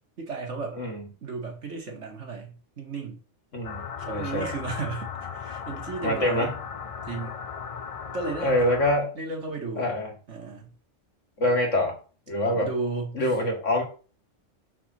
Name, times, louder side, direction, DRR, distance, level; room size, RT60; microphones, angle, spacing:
voice 1, 0.2-0.8 1.2-3.2 4.0-6.5 7.0-7.4 8.1-8.5 9.1-9.9 10.3-10.7 12.4-13.2, right 4 dB, 70° right, 2 dB, 2.2 m, -34 dB
voice 2, 3.5-4.5 6.0-6.5 8.4-9.1 9.8-10.1 11.4-12.0 12.3-12.7 13.1-13.8, left 1 dB, 80° left, 2 dB, 2.5 m, -25 dB
sound 1, 3.6-9.0, left 6 dB, 45° left, 0.4 m, -36 dB
6.0 x 4.5 x 6.4 m, 0.37 s
omnidirectional pair, 1.3 m